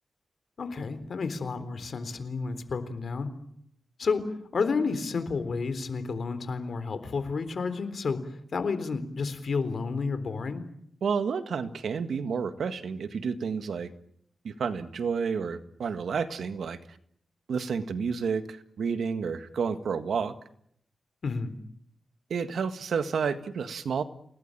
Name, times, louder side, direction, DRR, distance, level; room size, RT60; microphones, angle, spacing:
voice 1, 0.6-3.3 4.0-4.2 4.5-8.2 8.5-10.7 21.2-21.5, left 4 dB, 65° left, 12 dB, 3.7 m, -30 dB
voice 2, 11.0-13.9 14.4-16.8 17.5-20.3 22.3-24.0, right 6 dB, 85° right, 10 dB, 1.8 m, -30 dB
28.5 x 19.0 x 9.0 m, 0.71 s
cardioid pair, 85°, 0 cm